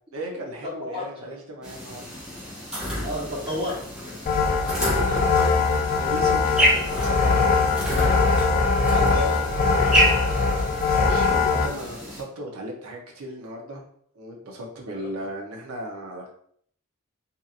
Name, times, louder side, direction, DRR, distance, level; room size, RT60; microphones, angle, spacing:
voice 1, 0.1-2.0 4.8-7.5 11.0-13.8 14.1-16.3, right 1 dB, 75° right, 0 dB, 0.7 m, -36 dB
voice 2, 0.8-1.1 3.0-3.8 8.9-9.6 9.8-9.9 14.9-15.1, left 1 dB, 25° right, -6 dB, 1.0 m, -31 dB
sound 1, 1.6-12.2, equal, 5° right, 0.7 m, -29 dB
sound 2, 4.3-11.7, left 4 dB, 40° left, 0.3 m, -21 dB
2.7 x 2.5 x 2.4 m, 0.63 s
head